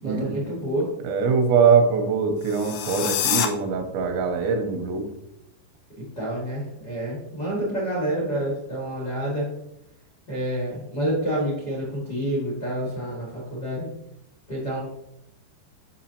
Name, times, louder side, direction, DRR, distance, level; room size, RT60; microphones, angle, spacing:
voice 1, 0.0-0.9 6.0-9.5 10.3-13.9 14.5-14.8, right 1 dB, 55° left, -5 dB, 1.0 m, -28 dB
voice 2, 1.0-5.0, right 5 dB, 90° right, 5 dB, 3.1 m, -22 dB
sound 1, 2.4-3.5, left 10 dB, 85° left, 2.2 m, -26 dB
8.7 x 5.8 x 2.8 m, 0.82 s
omnidirectional pair, 5.2 m